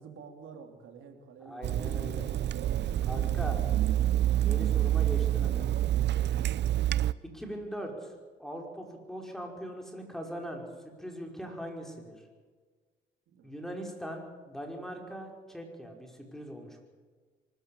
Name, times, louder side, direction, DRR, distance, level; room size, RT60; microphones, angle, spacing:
voice 1, 0.0-1.7 5.7-6.1 13.3-13.5, right 6 dB, 85° right, 4 dB, 3.2 m, -50 dB
voice 2, 1.5-2.3 3.1-3.6 4.4-5.7 7.3-8.1 8.4-10.7 11.0-12.2 13.4-16.8, equal, ahead, 2 dB, 5.4 m, -40 dB
Water tap faucet / Sink (filling or washing), 1.6-7.1, right 12 dB, 60° right, 0.6 m, -27 dB
24.0 x 14.0 x 8.6 m, 1.5 s
cardioid pair, 90°, 20 cm